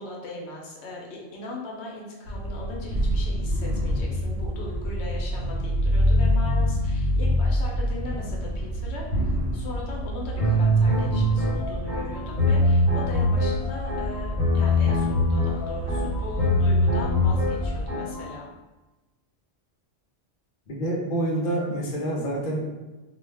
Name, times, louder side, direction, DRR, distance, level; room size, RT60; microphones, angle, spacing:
voice 1, 0.0-9.0 9.5-18.5, left 2 dB, 80° left, -2 dB, 0.9 m, -39 dB
sound 1, 2.2-17.9, left 1 dB, 70° right, 1.1 m, -27 dB
sound 2, 10.4-18.3, left 1 dB, 45° right, 0.9 m, -23 dB
voice 2, 20.7-22.7, right 1 dB, 55° left, -3 dB, 0.7 m, -27 dB
2.4 x 2.1 x 3.2 m, 1.1 s
omnidirectional pair, 1.1 m